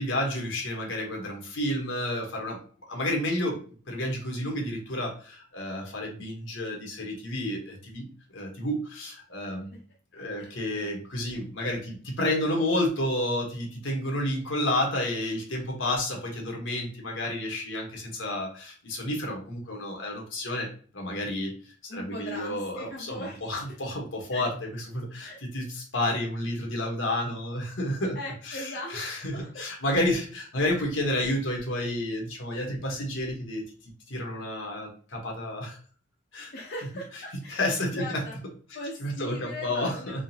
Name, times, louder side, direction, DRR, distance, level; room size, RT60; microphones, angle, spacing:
voice 1, 0.0-2.6 2.9-3.6 3.9-8.1 8.3-9.8 10.1-28.2 28.4-35.8 36.3-36.5 37.5-38.2 39.0-40.2, left 1 dB, 75° left, 0 dB, 1.2 m, -30 dB
voice 2, 21.9-23.7 24.3-24.5 25.2-25.4 28.1-29.7 30.7-30.8 36.5-38.4 38.7-40.2, left 1 dB, 55° left, -3 dB, 0.7 m, -40 dB
3.7 x 3.2 x 2.8 m, 0.42 s
head